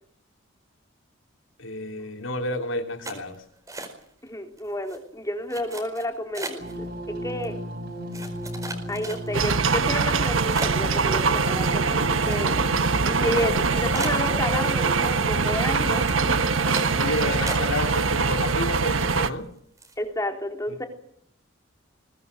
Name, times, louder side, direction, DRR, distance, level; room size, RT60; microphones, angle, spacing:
voice 1, 1.6-3.4 17.0-19.5, left 1 dB, 75° left, 6 dB, 3.0 m, -30 dB
sound 1, 3.0-4.3 4.6-5.0 5.5-6.8 7.4-7.5 8.1-9.5 10.0-10.2 10.5-12.7 13.0-13.1 13.5-13.6 13.9-15.0 15.3-15.7 16.0-16.2 16.7-17.1 17.5-18.0 18.3-19.0 19.3-19.4 19.8-20.0, right 2 dB, 15° right, 4.8 m, -37 dB
voice 2, 4.2-6.9 7.2-7.6 8.9-12.7 13.0-16.4 20.0-20.8, left 1 dB, 15° left, 4 dB, 3.5 m, -31 dB
sound 2, 6.6-17.3, equal, 55° right, 6.7 m, -34 dB
sound 3, 9.3-19.3, right 4 dB, 85° right, 1.3 m, -23 dB
22.0 x 19.0 x 8.1 m, 0.66 s
head